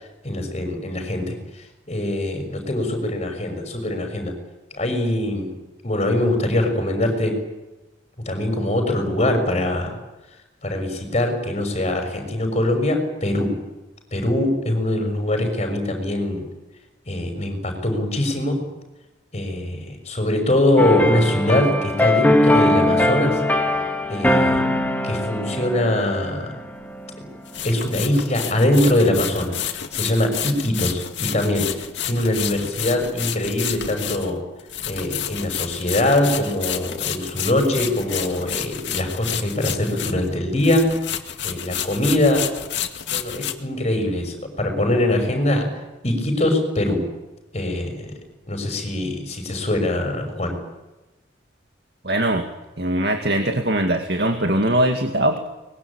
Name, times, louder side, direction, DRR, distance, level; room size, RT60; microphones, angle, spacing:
voice 1, 0.2-1.3 1.9-4.3 4.7-5.5 5.8-7.3 8.2-10.0 10.6-13.5 14.1-16.5 17.1-18.6 19.3-23.3 24.1-24.8 25.0-26.5 27.6-29.6 29.9-31.7 32.0-34.4 34.9-40.9 41.4-42.5 43.1-45.7 46.0-47.0 47.5-48.1 48.5-50.6, left 1 dB, 35° left, 5 dB, 6.4 m, -22 dB
sound 1, 20.8-27.3 27.6-27.9, left 1 dB, 10° left, 1.9 m, -21 dB
sound 2, 27.5-40.3 40.6-43.5, left 10 dB, 80° left, 2.1 m, -30 dB
voice 2, 52.0-52.4 52.8-55.4, right 1 dB, 60° right, 5 dB, 2.2 m, -21 dB
24.0 x 21.5 x 8.9 m, 1.0 s
head